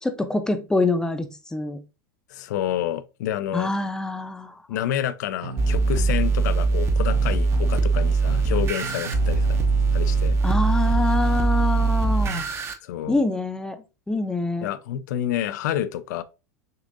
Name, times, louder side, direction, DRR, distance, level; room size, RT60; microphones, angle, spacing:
voice 1, 0.0-1.8 3.5-4.5 10.4-12.5 13.1-13.8 14.1-14.7, left 3 dB, 5° left, 0.6 m, -25 dB
voice 2, 2.3-3.7 4.7-9.6 9.9-10.4 12.8-13.2 14.6-16.2, left 11 dB, 70° left, 0.5 m, -28 dB
sound 1, 5.4-12.4, right 3 dB, 65° right, 0.8 m, -35 dB
sound 2, 5.6-12.7, right 4 dB, 25° right, 0.7 m, -21 dB
6.4 x 2.5 x 2.5 m
hypercardioid pair, 110°, 10 cm